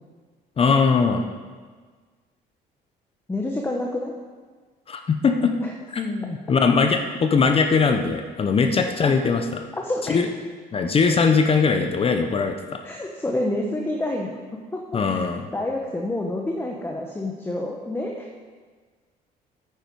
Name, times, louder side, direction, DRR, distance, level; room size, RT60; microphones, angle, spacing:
voice 1, 0.6-1.3 4.9-5.5 5.9-9.6 10.1-10.3 10.7-12.8 14.9-15.5, left 5 dB, 35° left, 6 dB, 0.8 m, -21 dB
voice 2, 3.3-4.1 5.6-5.7 9.0-9.2 9.8-10.2 12.8-15.2 15.5-18.3, left 1 dB, 15° left, 0 dB, 1.0 m, -28 dB
9.3 x 8.7 x 4.7 m, 1.5 s
cardioid pair, 110°, 17 cm